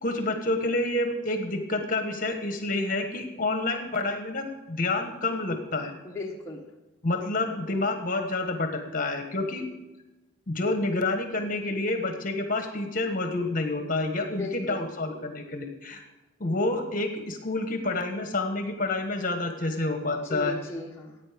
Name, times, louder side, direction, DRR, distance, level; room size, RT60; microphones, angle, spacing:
voice 1, 0.0-5.9 7.0-9.7 10.5-16.0 16.4-20.6, left 2 dB, 40° left, 6 dB, 1.4 m, -28 dB
voice 2, 6.0-6.6 14.2-14.8 20.2-21.1, left 2 dB, 15° left, -3 dB, 1.2 m, -36 dB
14.5 x 9.2 x 5.2 m, 1.1 s
head